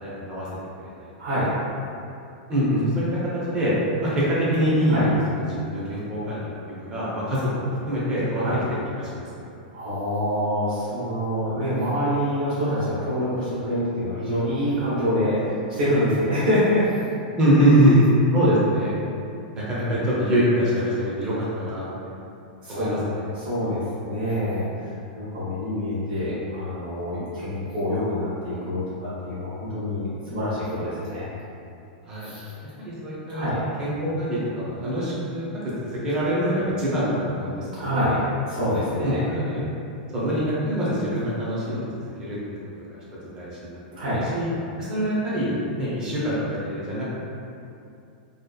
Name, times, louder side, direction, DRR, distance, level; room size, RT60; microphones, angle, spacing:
voice 1, 0.0-0.5 2.5-3.7 4.0-5.1 5.5-8.4 8.7-9.2 17.4-18.0 18.3-18.9 19.5-21.8 22.7-23.3 32.1-32.3 32.8-33.5 33.8-35.5 35.8-37.7 39.0-39.6 40.1-41.8 42.2-42.4 43.4-43.8 44.3-44.5 44.8-47.0, equal, 15° right, -8 dB, 0.4 m, -24 dB
voice 2, 1.2-1.5 4.9-5.0 8.4-8.6 9.7-16.9 17.5-18.1 19.7-20.0 22.6-24.7 25.2-31.3 32.2-32.4 33.3-33.6 37.8-39.2 43.9-44.2, equal, 75° right, -11 dB, 0.7 m, -26 dB
2.6 x 2.2 x 2.2 m, 2.6 s
supercardioid pair, 180°, 5 cm